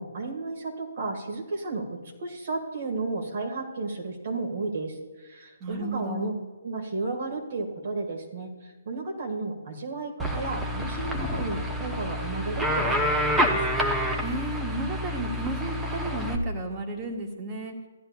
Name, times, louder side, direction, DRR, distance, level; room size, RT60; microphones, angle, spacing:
voice 1, 0.0-6.3 6.6-13.6, right 3 dB, 55° right, 2 dB, 2.0 m, -33 dB
voice 2, 5.6-6.4 14.2-17.7, right 2 dB, 25° right, 1 dB, 1.6 m, -33 dB
sound 1, 10.2-16.4, equal, 5° right, 0.8 m, -28 dB
15.0 x 10.0 x 2.4 m, 1.3 s
figure-of-eight pair, 140°, 0 cm